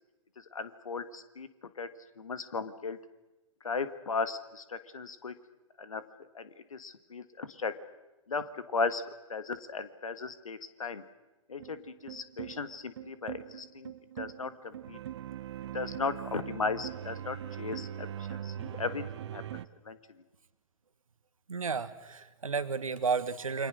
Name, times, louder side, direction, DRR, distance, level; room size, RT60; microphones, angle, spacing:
voice 1, 0.5-1.5 1.8-1.9 2.2-3.0 3.6-5.3 5.8-7.7 8.3-9.0 9.3-11.0 11.5-13.9 14.2-15.0 15.7-19.0 19.3-20.0, left 4 dB, 75° left, 12 dB, 2.0 m, -36 dB
sound 1, 11.6-19.7, right 11 dB, 55° right, 1.0 m, -41 dB
voice 2, 21.5-23.7, right 5 dB, 80° right, 12 dB, 1.8 m, -32 dB
29.0 x 24.5 x 6.5 m, 1.1 s
figure-of-eight pair, 115°, 17 cm